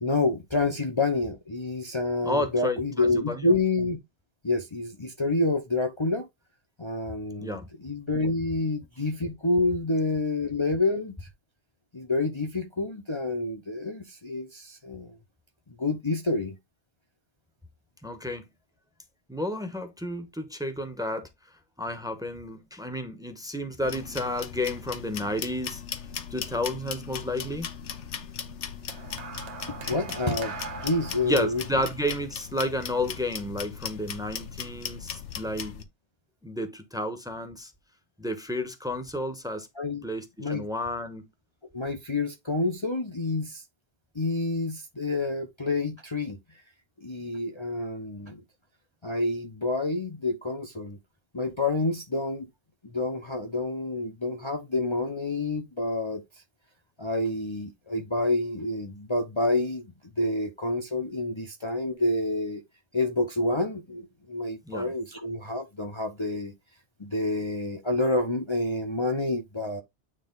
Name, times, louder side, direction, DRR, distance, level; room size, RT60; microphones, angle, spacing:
voice 1, 0.0-4.0 4.4-6.3 6.8-11.2 11.9-15.1 15.8-16.5 29.9-31.6 39.8-40.0 40.4-40.6 41.7-43.6 44.1-46.4 47.0-48.4 49.0-51.0 51.3-52.5 52.9-56.2 57.0-62.6 62.9-66.5 67.0-69.8, left 2 dB, 25° left, 1.0 m, -28 dB
voice 2, 2.2-3.5 7.4-7.7 18.0-18.5 19.3-21.3 21.8-25.8 26.3-27.7 31.2-35.8 36.4-37.7 38.2-39.7 40.0-41.3 64.7-64.9, left 1 dB, 5° right, 1.2 m, -31 dB
sound 1, 23.8-35.8, left 8 dB, 80° left, 1.2 m, -38 dB
sound 2, 28.9-33.3 34.2-34.5, right 5 dB, 70° right, 1.2 m, -41 dB
9.1 x 3.3 x 3.9 m
omnidirectional pair, 1.2 m